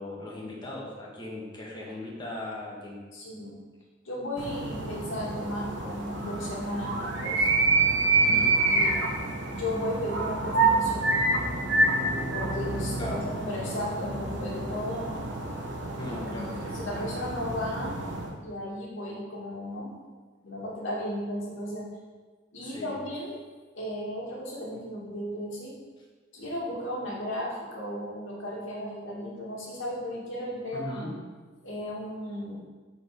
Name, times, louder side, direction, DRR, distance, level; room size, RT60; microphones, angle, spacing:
voice 1, 0.0-3.0 8.1-8.6 13.0-13.2 16.0-16.8 22.6-22.9 30.7-31.2, left 1 dB, 25° left, -4 dB, 1.7 m, -38 dB
voice 2, 3.1-3.6 4.0-7.5 8.2-9.0 9.5-11.1 12.3-15.2 16.2-18.0 18.2-19.9 20.4-21.9 22.5-23.4 23.7-25.7 26.3-31.1 31.6-32.6, left 1 dB, 80° left, -5 dB, 2.3 m, -35 dB
sound 1, 4.4-18.3, right 3 dB, 65° right, 1.2 m, -28 dB
8.0 x 4.7 x 5.1 m, 1.4 s
head